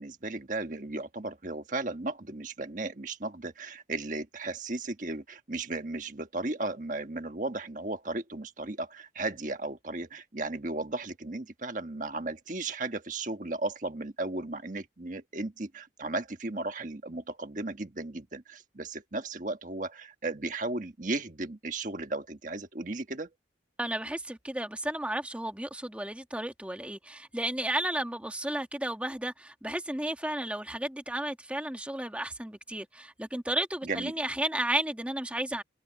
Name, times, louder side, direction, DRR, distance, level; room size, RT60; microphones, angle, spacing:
voice 1, 0.0-23.3 33.8-34.1, right 2 dB, 45° right, 1.5 m, -35 dB
voice 2, 23.8-35.6, right 1 dB, 5° right, 1.6 m, -33 dB
head